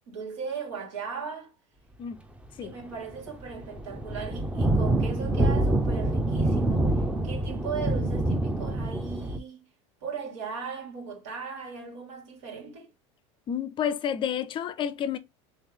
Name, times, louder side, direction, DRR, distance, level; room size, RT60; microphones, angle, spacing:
voice 1, 0.1-1.5 2.6-6.9 7.2-9.6 10.0-12.9, right 6 dB, 80° right, 2.4 m, -37 dB
sound 1, 2.7-2.9 3.1-9.4, right 1 dB, 10° right, 0.6 m, -26 dB
voice 2, 13.5-15.2, left 9 dB, 35° left, 0.5 m, -30 dB
3.3 x 3.2 x 3.6 m
supercardioid pair, 125°, 15 cm